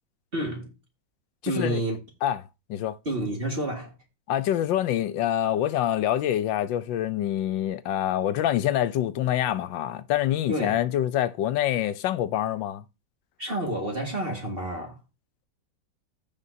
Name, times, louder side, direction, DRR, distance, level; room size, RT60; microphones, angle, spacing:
voice 1, 0.3-0.7 1.5-2.0 3.0-3.9 10.5-10.8 13.4-15.0, right 1 dB, 30° right, 2.0 m, -29 dB
voice 2, 1.4-1.8 2.2-2.4 2.7-3.0 4.3-12.8, left 11 dB, 80° left, 1.3 m, -26 dB
15.0 x 5.3 x 2.7 m
omnidirectional pair, 2.1 m